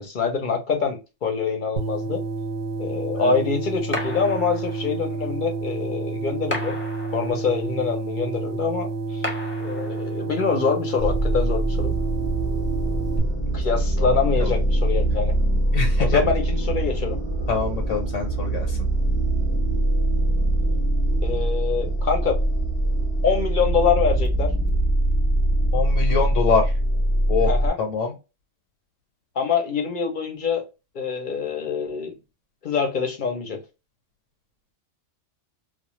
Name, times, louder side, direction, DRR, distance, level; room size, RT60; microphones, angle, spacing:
voice 1, 0.0-2.2 2.8-6.8 7.1-9.3 9.6-11.9 13.5-15.3 16.0-17.2 21.2-22.4 23.2-24.5 27.4-27.8 29.4-30.7 30.9-32.1 32.6-33.6, left 5 dB, 55° left, 3 dB, 0.6 m, -25 dB
sound 1, 1.8-13.2, right 4 dB, 60° right, 0.7 m, -30 dB
sound 2, 3.9-5.1 6.5-7.6 9.2-10.3, left 2 dB, 15° left, 0.5 m, -33 dB
sound 3, 11.0-27.7, right 1 dB, 30° right, 0.5 m, -23 dB
voice 2, 14.0-14.5 15.7-16.2 17.5-18.9 25.7-26.7 27.3-27.5 27.8-28.1, left 5 dB, 85° left, 1 dB, 1.0 m, -25 dB
2.3 x 2.1 x 2.9 m, 0.28 s
omnidirectional pair, 1.3 m